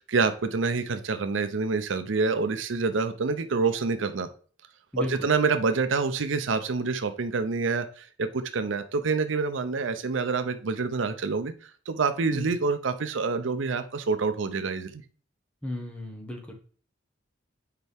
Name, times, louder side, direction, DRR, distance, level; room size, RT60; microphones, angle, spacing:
voice 1, 0.0-4.3 5.0-15.0, right 4 dB, 80° right, 9 dB, 0.6 m, -27 dB
voice 2, 4.9-5.3 12.3-12.5 15.6-16.5, left 1 dB, 5° left, 1 dB, 1.2 m, -34 dB
6.7 x 4.6 x 3.5 m, 0.42 s
head